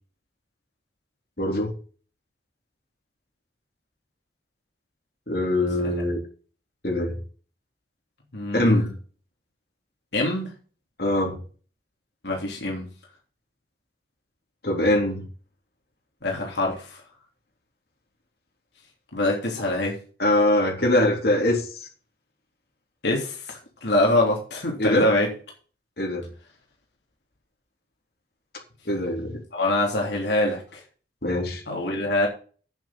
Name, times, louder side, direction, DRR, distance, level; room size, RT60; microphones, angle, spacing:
voice 1, 1.4-1.7 5.3-6.2 6.8-7.1 8.5-9.0 11.0-11.4 14.6-15.2 20.2-21.7 24.8-25.1 26.0-26.3 28.9-29.4 31.2-31.6, left 1 dB, 60° left, 0 dB, 3.5 m, -22 dB
voice 2, 8.3-8.7 10.1-10.5 12.2-12.9 16.2-17.0 19.1-20.0 23.0-25.3 29.5-30.8 31.7-32.3, left 1 dB, 75° left, -1 dB, 3.2 m, -24 dB
9.0 x 7.9 x 6.4 m, 0.39 s
head